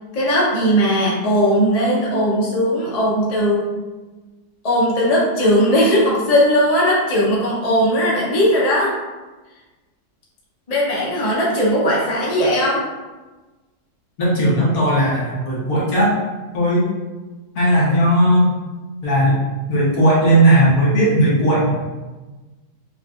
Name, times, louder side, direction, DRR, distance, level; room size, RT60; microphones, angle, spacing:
voice 1, 0.1-3.6 4.6-8.9 10.7-12.8, equal, 35° left, -5 dB, 0.7 m, -18 dB
voice 2, 14.2-16.1 16.5-16.9 17.5-18.6 19.0-19.4 19.7-21.8, right 1 dB, 60° left, -7 dB, 1.6 m, -16 dB
5.5 x 2.5 x 2.4 m, 1.2 s
omnidirectional pair, 1.7 m